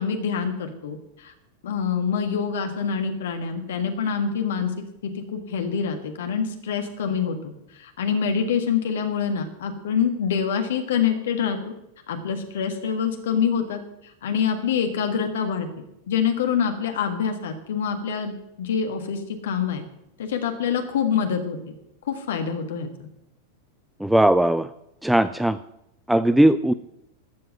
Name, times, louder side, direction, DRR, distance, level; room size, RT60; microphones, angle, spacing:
voice 1, 0.0-1.3 1.6-4.7 5.0-11.7 12.1-15.7 16.1-19.8 20.2-21.6 22.0-22.9, left 7 dB, 60° left, 6 dB, 1.6 m, -26 dB
voice 2, 24.0-24.7 25.0-25.6 26.1-26.7, right 1 dB, 5° right, 14 dB, 0.4 m, -18 dB
13.0 x 7.5 x 7.8 m, 0.83 s
figure-of-eight pair, 90°, 0 cm